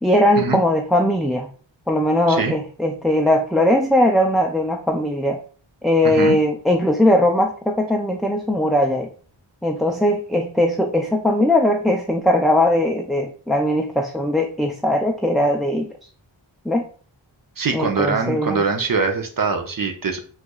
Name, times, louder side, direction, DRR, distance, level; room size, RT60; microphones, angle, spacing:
voice 1, 0.0-1.5 1.9-5.4 5.8-9.1 9.6-15.9 16.7-16.9 17.7-18.6, left 1 dB, ahead, 1 dB, 0.3 m, -19 dB
voice 2, 6.0-6.4 17.6-20.2, right 4 dB, 45° right, 5 dB, 0.7 m, -23 dB
4.5 x 2.5 x 2.3 m, 0.41 s
wide cardioid pair, 45°, 47 cm